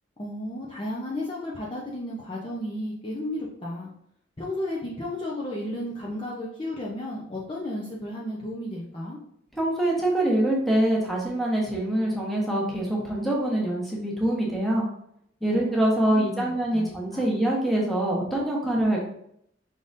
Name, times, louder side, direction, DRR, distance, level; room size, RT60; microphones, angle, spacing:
voice 1, 0.2-3.9 4.4-9.2 15.5-17.3, left 1 dB, 25° left, -4 dB, 0.6 m, -33 dB
voice 2, 9.5-14.9 15.4-19.1, right 1 dB, ahead, -3 dB, 1.0 m, -24 dB
5.2 x 3.8 x 2.6 m, 0.72 s
head